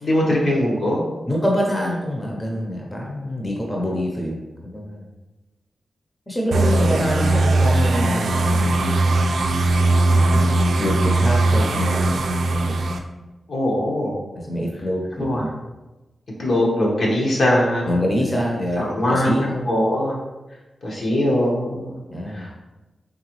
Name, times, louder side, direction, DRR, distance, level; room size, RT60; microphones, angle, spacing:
voice 1, 0.0-1.1 13.5-14.1 15.2-15.4 16.4-17.9 18.8-20.2 20.8-22.0 22.3-22.6, left 1 dB, 65° left, -4 dB, 1.1 m, -21 dB
voice 2, 1.3-5.1 6.3-9.3 10.1-12.9 14.3-15.4 17.9-19.7 22.1-22.5, equal, 20° left, -1 dB, 0.7 m, -26 dB
sound 1, 6.5-13.0, right 2 dB, 90° right, 0.4 m, -19 dB
3.9 x 3.4 x 3.1 m, 1.1 s
wide cardioid pair, 85°, 0 cm